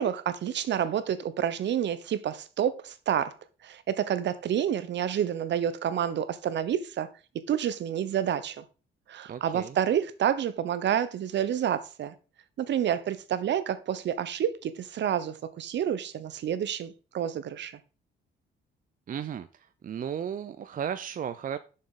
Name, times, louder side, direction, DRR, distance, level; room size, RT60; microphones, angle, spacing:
voice 1, 0.0-3.4 3.6-7.1 7.5-8.6 9.1-12.1 12.6-17.8, right 9 dB, 65° right, 0.9 m, -29 dB
voice 2, 9.3-9.7 19.1-19.5 19.8-21.6, right 8 dB, 45° right, 0.6 m, -34 dB
6.7 x 6.4 x 3.7 m
cardioid pair, 90°, 20 cm